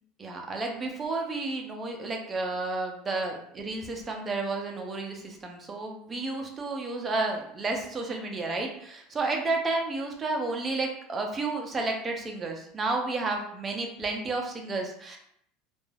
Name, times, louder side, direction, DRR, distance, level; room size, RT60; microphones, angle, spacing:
voice 1, 0.2-15.2, right 3 dB, 15° right, 1 dB, 0.4 m, -31 dB
2.2 x 2.2 x 3.2 m, 0.70 s
cardioid pair, 175°, 0 cm